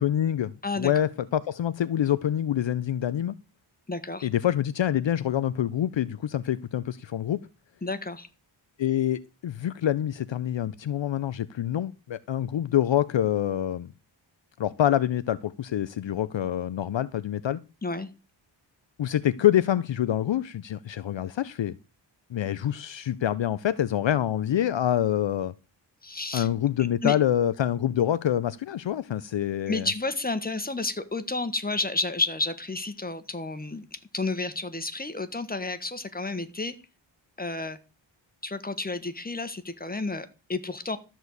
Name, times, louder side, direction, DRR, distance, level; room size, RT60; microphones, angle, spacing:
voice 1, 0.0-3.4 4.2-7.4 8.8-13.9 14.6-17.6 19.0-21.7 22.3-25.5 26.3-29.9, left 11 dB, 65° left, 0.6 m, -26 dB
voice 2, 3.9-4.3 7.8-8.3 17.8-18.1 26.0-26.5 27.0-27.1 29.7-36.8 37.4-37.8 38.4-41.0, left 3 dB, 20° left, 1.5 m, -31 dB
13.5 x 4.5 x 8.1 m
wide cardioid pair, 75°, 48 cm